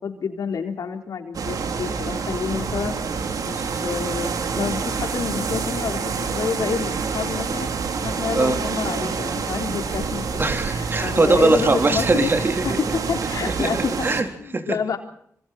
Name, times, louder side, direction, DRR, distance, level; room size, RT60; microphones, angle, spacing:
voice 1, 0.0-3.0 3.4-7.7 8.0-10.3 10.7-12.3 12.6-13.9 14.4-15.0, left 6 dB, 80° left, 4 dB, 4.0 m, -28 dB
sound 1, 1.3-14.2, right 5 dB, 80° right, 3.3 m, -27 dB
voice 2, 10.4-12.8 13.5-14.8, right 3 dB, 35° right, 6 dB, 3.9 m, -21 dB
26.5 x 25.5 x 4.4 m, 0.65 s
cardioid pair, 80°, 6 cm